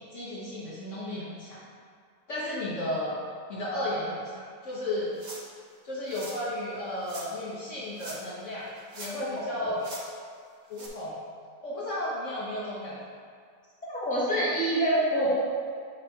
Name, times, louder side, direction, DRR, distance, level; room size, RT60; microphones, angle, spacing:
voice 1, 0.1-1.6 2.3-3.2 3.5-5.1 5.8-8.7 8.9-9.9 10.7-11.2 11.6-13.0, left 1 dB, 50° left, -7 dB, 1.3 m, -33 dB
sound 1, 5.2-5.6 6.1-6.4 7.0-7.3 7.9-8.4 8.7-9.3 9.8-10.0 10.7-10.9, right 2 dB, 40° right, 0.6 m, -43 dB
voice 2, 13.9-15.4, right 1 dB, 5° left, -8 dB, 1.3 m, -26 dB
5.9 x 4.5 x 4.4 m, 2.1 s
omnidirectional pair, 1.8 m